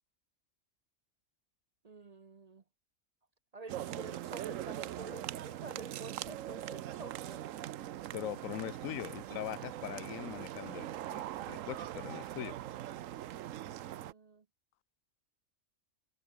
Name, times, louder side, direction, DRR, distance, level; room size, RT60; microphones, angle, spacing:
voice 1, 1.8-2.6 3.5-7.5 13.9-14.4, right 3 dB, 40° right, 0.7 m, -49 dB
sound 1, 3.7-14.1, right 12 dB, 80° right, 1.0 m, -42 dB
voice 2, 8.1-12.6, left 13 dB, 90° left, 1.0 m, -42 dB
omnidirectional pair, 1.3 m